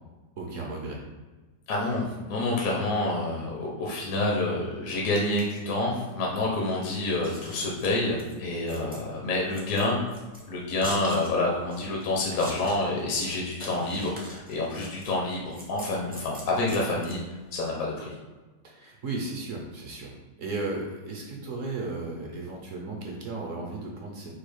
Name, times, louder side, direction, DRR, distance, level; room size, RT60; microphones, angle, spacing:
voice 1, 0.4-1.0 18.6-24.4, right 3 dB, 60° right, -1 dB, 1.0 m, -35 dB
voice 2, 1.7-10.0 10.4-17.2 17.5-18.1, left 2 dB, 60° left, -2 dB, 1.1 m, -28 dB
Scissors, 7.0-17.6, equal, 10° right, 0.4 m, -44 dB
4.5 x 2.4 x 4.8 m, 1.3 s
omnidirectional pair, 1.8 m